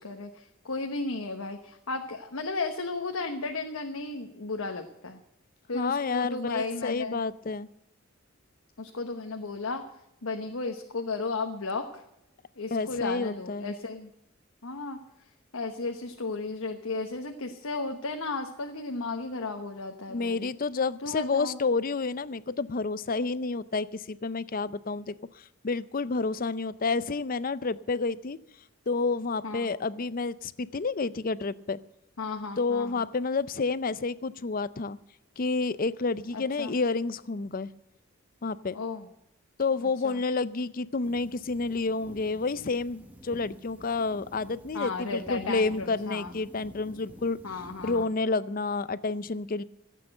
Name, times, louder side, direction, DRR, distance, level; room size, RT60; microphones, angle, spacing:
voice 1, 0.0-5.2 5.7-7.2 8.8-9.8 10.2-12.0 12.6-14.1 14.6-15.0 15.5-20.5 21.0-21.6 29.4-29.7 32.2-33.0 36.3-36.8 38.7-39.1 40.0-40.2 44.7-46.3 47.4-48.1, left 3 dB, 85° left, 4 dB, 1.1 m, -34 dB
voice 2, 5.7-7.7 12.7-13.7 20.1-28.4 28.9-31.8 32.6-35.0 35.4-37.7 38.4-38.7 39.6-47.4 47.8-49.6, left 4 dB, 40° left, 17 dB, 0.5 m, -29 dB
sound 1, 41.0-48.1, equal, 10° right, 1.4 m, -50 dB
15.5 x 8.5 x 7.7 m, 0.84 s
head